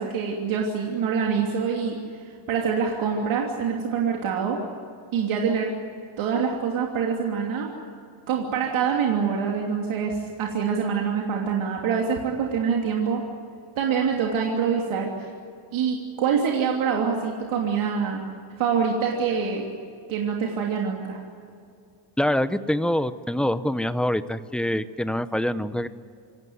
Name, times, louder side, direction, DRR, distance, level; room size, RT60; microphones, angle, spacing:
voice 1, 0.0-4.6 5.1-5.7 6.2-7.7 8.3-13.2 13.8-15.3 15.7-18.2 18.6-19.6 20.1-21.2, right 6 dB, 90° right, 0 dB, 3.2 m, -25 dB
voice 2, 22.2-25.9, left 1 dB, ahead, 12 dB, 0.8 m, -25 dB
27.0 x 17.0 x 9.6 m, 2.4 s
cardioid pair, 135°, 46 cm